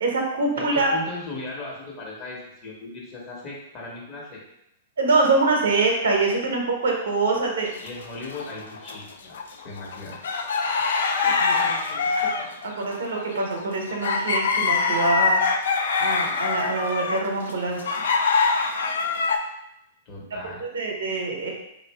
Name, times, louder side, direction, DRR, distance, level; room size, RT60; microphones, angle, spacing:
voice 1, 0.0-0.9 5.0-7.7 11.2-15.4 16.0-18.0 20.6-21.5, right 3 dB, 75° right, 0 dB, 0.8 m, -25 dB
voice 2, 0.6-4.4 7.8-10.5 20.0-20.6, left 2 dB, 35° left, -4 dB, 1.2 m, -37 dB
sound 1, 7.6-9.0 9.3-19.4, left 4 dB, 70° left, 0.3 m, -24 dB
2.7 x 2.5 x 3.2 m, 0.82 s
hypercardioid pair, 110°, 0 cm